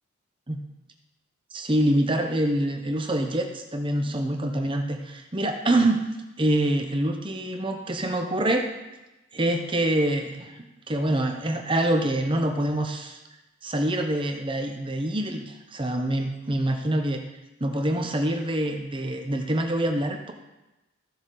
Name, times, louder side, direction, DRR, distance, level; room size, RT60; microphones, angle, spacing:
voice 1, 1.5-6.0 6.4-8.6 9.3-13.2 13.6-17.2 17.6-20.3, right 1 dB, 25° right, 4 dB, 0.9 m, -25 dB
14.5 x 6.9 x 3.9 m, 1.0 s
head